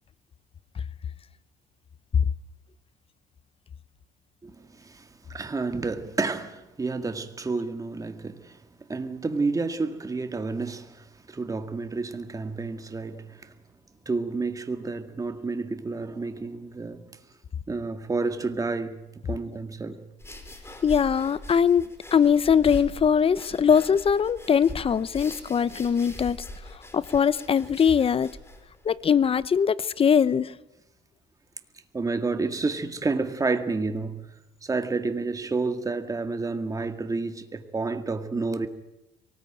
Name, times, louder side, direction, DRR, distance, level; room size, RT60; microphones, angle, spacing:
voice 1, 4.4-8.6 8.9-13.5 14.1-17.1 17.7-20.0 31.9-34.2 34.6-38.7, right 3 dB, 20° right, 1.9 m, -30 dB
sound 1, 20.2-29.5, left 1 dB, 15° left, 4.3 m, -42 dB
voice 2, 20.8-21.9 22.1-26.4 26.9-28.3 28.8-30.5, left 7 dB, 35° left, 0.7 m, -21 dB
23.5 x 19.0 x 9.1 m
cardioid pair, 110°, 17 cm